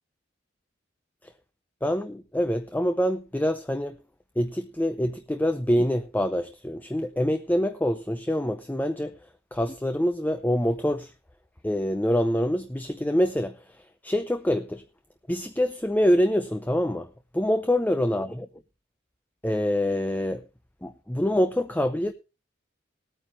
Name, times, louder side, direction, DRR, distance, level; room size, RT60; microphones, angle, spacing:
voice 1, 1.8-4.0 4.4-11.1 11.6-14.8 15.3-17.1 17.3-18.5 19.4-20.5 20.8-22.1, equal, 10° left, 0.5 m, -25 dB
19.5 x 9.0 x 2.9 m
head